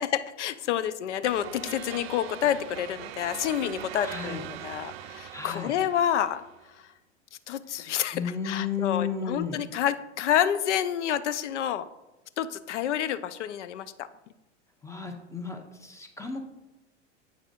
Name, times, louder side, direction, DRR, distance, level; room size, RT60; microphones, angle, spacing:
voice 1, 0.0-6.4 6.8-6.9 7.5-11.9 12.4-14.1, left 10 dB, 75° left, 14 dB, 0.5 m, -29 dB
sound 1, 1.2-6.7, right 12 dB, 55° right, 0.5 m, -41 dB
voice 2, 4.0-4.4 5.3-5.7 7.8-7.9 8.1-9.6 14.8-16.4, left 6 dB, 10° left, 5 dB, 0.7 m, -33 dB
8.2 x 6.0 x 2.5 m, 1.0 s
hypercardioid pair, 95°, 36 cm